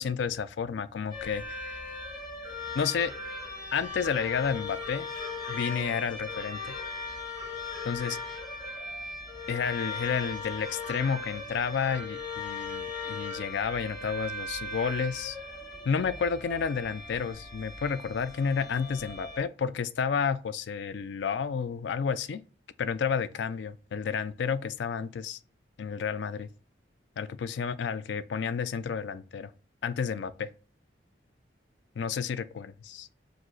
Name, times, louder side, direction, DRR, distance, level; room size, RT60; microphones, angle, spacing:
voice 1, 0.0-1.8 2.7-3.1 3.7-5.1 5.5-6.8 7.8-8.3 9.5-15.4 15.8-22.4 22.8-25.4 25.8-26.5 27.2-29.5 29.8-30.5 32.0-33.1, left 6 dB, 70° left, 0.4 m, -31 dB
Street Hulusi, 1.1-19.4, left 3 dB, 45° left, 1.4 m, -38 dB
5.1 x 2.0 x 3.8 m
head